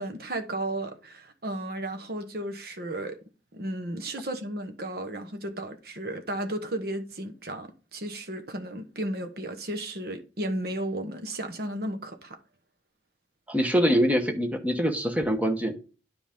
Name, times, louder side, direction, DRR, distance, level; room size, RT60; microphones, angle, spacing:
voice 1, 0.0-3.2 3.5-12.4, right 1 dB, 55° right, 1.2 m, -34 dB
voice 2, 13.5-15.7, equal, 10° right, 1.1 m, -24 dB
10.0 x 5.0 x 3.6 m
head